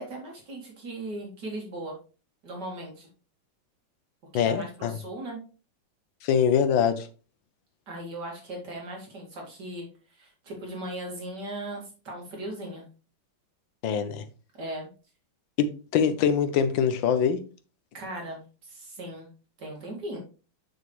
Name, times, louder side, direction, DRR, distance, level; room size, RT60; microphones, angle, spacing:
voice 1, 0.0-2.0 2.4-3.1 4.3-5.4 7.9-12.8 14.6-14.9 17.9-19.3 19.6-20.2, right 1 dB, 60° right, 2.8 m, -38 dB
voice 2, 4.3-4.9 6.2-7.1 13.8-14.2 15.6-17.4, left 7 dB, 80° left, 1.5 m, -24 dB
7.0 x 6.3 x 3.2 m
omnidirectional pair, 2.1 m